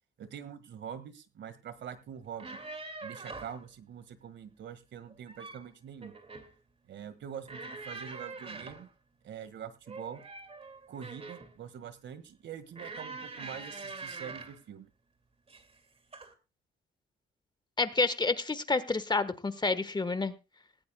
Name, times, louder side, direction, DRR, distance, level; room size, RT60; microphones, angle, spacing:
voice 1, 0.2-2.6 3.0-6.1 6.9-8.9 9.2-10.2 10.9-14.9, right 8 dB, 65° right, 14 dB, 1.7 m, -44 dB
sound 1, 2.3-3.6 5.1-5.7 6.0-6.5 7.5-8.9 9.9-11.5 12.7-14.6 15.5-15.8 16.1-16.3, right 3 dB, 30° right, 2.2 m, -44 dB
voice 2, 17.8-20.3, left 3 dB, 20° left, 14 dB, 1.2 m, -29 dB
18.5 x 16.0 x 2.2 m, 0.28 s
cardioid pair, 90°, 20 cm